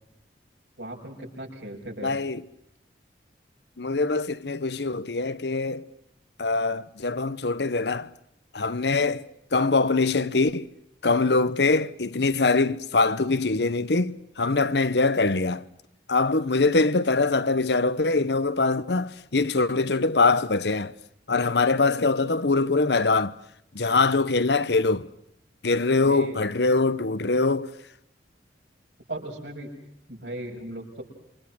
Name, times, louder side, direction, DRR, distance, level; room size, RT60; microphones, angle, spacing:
voice 1, 0.8-2.2 26.0-26.4 29.1-29.7 30.1-31.0, right 1 dB, 75° right, 7.5 m, -37 dB
voice 2, 2.0-2.4 3.8-5.9 6.4-8.1 8.5-10.7 11.0-15.6 16.1-20.9 21.3-23.4 23.7-25.1 25.6-27.7, left 3 dB, 70° left, 1.0 m, -23 dB
28.0 x 26.0 x 6.3 m
head